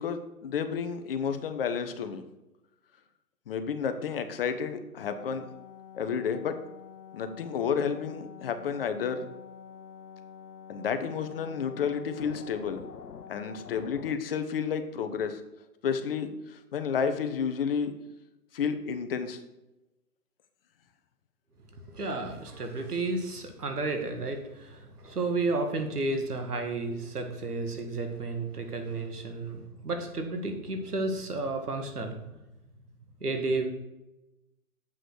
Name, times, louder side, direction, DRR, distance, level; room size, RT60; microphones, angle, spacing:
voice 1, 0.0-2.2 3.5-5.5 5.9-6.5 7.1-9.2 10.7-12.8 13.3-15.4 15.8-17.9 18.5-19.4, left 6 dB, 40° left, 8 dB, 1.0 m, -31 dB
sound 1, 5.1-14.1, left 7 dB, 85° left, 0.9 m, -47 dB
voice 2, 21.7-32.4 33.2-33.7, right 3 dB, 80° right, 6 dB, 2.1 m, -32 dB
8.0 x 6.1 x 6.3 m, 0.97 s
hypercardioid pair, 140°, 45 cm